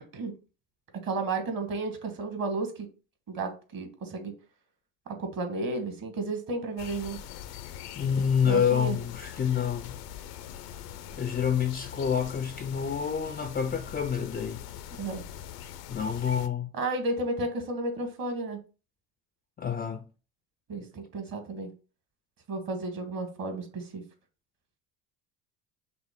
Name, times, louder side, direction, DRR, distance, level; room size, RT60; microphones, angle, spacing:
voice 1, 1.0-2.9 3.3-4.3 5.1-7.2 8.4-9.0 15.0-15.2 16.7-18.6 20.7-21.7 22.5-24.0, right 3 dB, 45° right, 1.5 m, -32 dB
sound 1, 6.8-16.5, left 10 dB, 80° left, 0.6 m, -43 dB
voice 2, 8.0-10.0 11.1-14.6 15.9-16.7 19.6-20.0, left 7 dB, 20° left, 0.4 m, -28 dB
5.8 x 2.0 x 3.6 m
hypercardioid pair, 65°, 47 cm